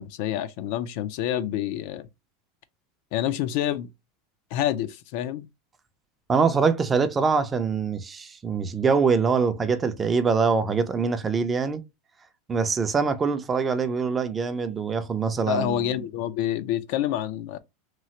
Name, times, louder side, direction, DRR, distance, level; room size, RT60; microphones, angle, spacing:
voice 1, 0.0-2.1 3.1-3.9 4.5-5.5 15.5-17.6, left 11 dB, 60° left, 0.4 m, -27 dB
voice 2, 6.3-11.8 12.5-16.0, right 5 dB, 15° right, 0.4 m, -24 dB
3.0 x 2.4 x 2.8 m
supercardioid pair, 145°, 0 cm